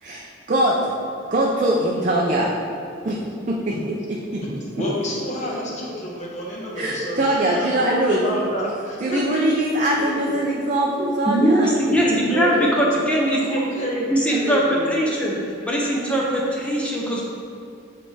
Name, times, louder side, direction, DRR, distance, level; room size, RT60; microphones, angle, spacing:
voice 1, 0.0-0.9 1.3-2.5 3.0-3.2 3.5-4.4 6.7-8.4 9.0-11.7 12.1-12.2, right 1 dB, 40° right, -2 dB, 0.5 m, -22 dB
voice 2, 4.8-7.2 7.5-9.4 10.0-10.1 12.2-12.9 13.3-15.0 15.3-15.4, equal, 35° left, -4 dB, 1.1 m, -28 dB
voice 3, 11.3-13.6 14.1-15.4 15.7-17.2, equal, 5° left, -4 dB, 0.6 m, -21 dB
8.7 x 3.4 x 3.3 m, 2.6 s
head